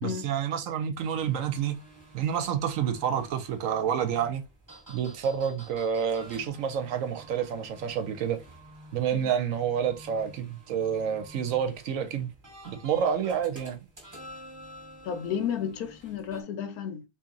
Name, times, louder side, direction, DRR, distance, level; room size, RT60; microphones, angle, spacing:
voice 1, 0.0-1.8 2.1-4.4 4.9-8.4 8.9-12.3 12.6-13.8, right 8 dB, 70° right, 0.9 m, -29 dB
sound 1, 1.1-16.4, right 1 dB, 15° right, 1.0 m, -50 dB
voice 2, 15.0-17.0, left 8 dB, 80° left, 1.2 m, -32 dB
2.8 x 2.8 x 3.7 m
omnidirectional pair, 1.6 m